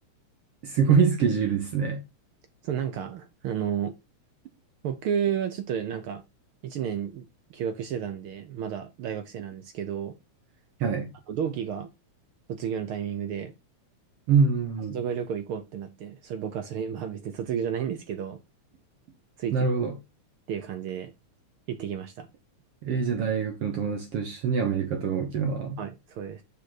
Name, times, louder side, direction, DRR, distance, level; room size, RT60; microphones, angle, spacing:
voice 1, 0.6-2.0 10.8-11.1 14.3-15.0 19.5-20.0 22.8-25.8, right 6 dB, 60° right, 1.9 m, -24 dB
voice 2, 2.6-3.9 4.8-6.2 6.6-10.1 11.3-11.9 12.5-13.5 14.9-18.4 19.4-19.7 20.5-21.1 21.7-22.3 25.8-26.4, right 8 dB, 75° right, 1.2 m, -32 dB
6.5 x 5.7 x 4.1 m
omnidirectional pair, 3.4 m